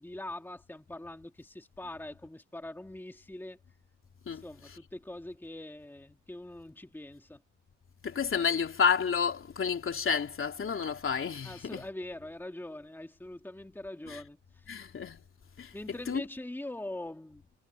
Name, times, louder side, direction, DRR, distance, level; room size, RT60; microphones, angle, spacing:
voice 1, 0.0-3.6 4.3-7.4 11.4-14.8 15.7-17.5, left 1 dB, 5° left, 2.1 m, -43 dB
voice 2, 8.0-11.8 14.1-14.2 14.7-15.2 15.6-15.7 16.1-16.2, left 6 dB, 45° left, 3.2 m, -30 dB
cardioid pair, 90°, 30 cm